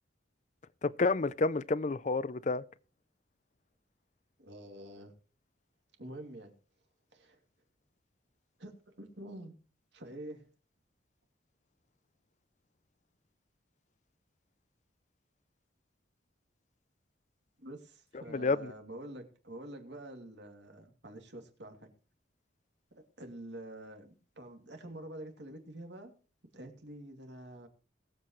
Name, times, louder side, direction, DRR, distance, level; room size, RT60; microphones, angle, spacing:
voice 1, 0.8-2.6 18.3-18.7, left 3 dB, 40° left, 0.5 m, -29 dB
voice 2, 4.4-5.1 6.0-6.5 7.1-7.4 8.6-9.6 9.9-10.5 17.6-21.9 22.9-26.1 26.5-27.7, right 1 dB, 65° right, 2.6 m, -47 dB
21.0 x 8.0 x 3.1 m
head